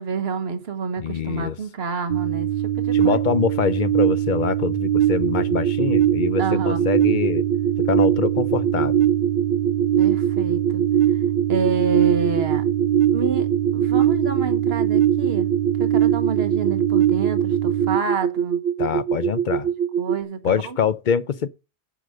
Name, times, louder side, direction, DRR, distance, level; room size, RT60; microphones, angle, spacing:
voice 1, 0.0-3.2 6.4-6.9 10.0-10.8 11.5-12.6 13.1-13.5 13.7-15.5 15.8-18.6 20.0-20.8, right 5 dB, 70° right, 1.5 m, -28 dB
voice 2, 1.0-1.6 2.9-7.4 7.8-9.0 18.8-19.7 20.4-21.5, left 7 dB, 55° left, 0.7 m, -24 dB
sound 1, 2.1-18.0, right 12 dB, 45° right, 0.6 m, -22 dB
sound 2, 5.1-20.2, right 8 dB, 90° right, 1.1 m, -25 dB
10.0 x 4.9 x 6.5 m
omnidirectional pair, 1.1 m